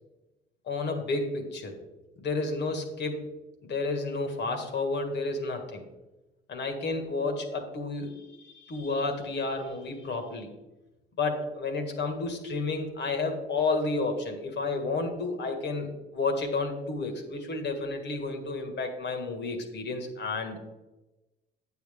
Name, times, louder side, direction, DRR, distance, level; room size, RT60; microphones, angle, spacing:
voice 1, 0.7-1.8 2.2-3.3 3.6-5.8 6.5-10.5 11.2-20.6, left 3 dB, 60° left, 5 dB, 1.8 m, -31 dB
9.2 x 7.4 x 3.6 m, 1.0 s
cardioid pair, 90°, 20 cm